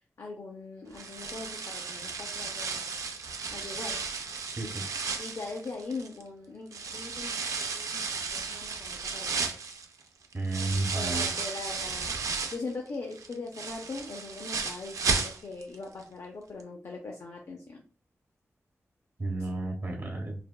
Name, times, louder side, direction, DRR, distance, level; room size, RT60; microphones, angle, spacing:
voice 1, 0.2-2.9 3.5-4.0 5.1-9.6 10.9-12.1 12.5-17.8, left 3 dB, 65° left, 1 dB, 0.5 m, -41 dB
sound 1, 0.9-6.2 6.7-12.7 13.1-15.7 16.0-16.1 16.6-16.7, right 4 dB, 80° right, 0.4 m, -34 dB
voice 2, 10.3-11.3 19.2-20.3, right 2 dB, 40° right, -1 dB, 0.8 m, -32 dB
3.3 x 2.1 x 2.2 m, 0.41 s
wide cardioid pair, 85°, 5 cm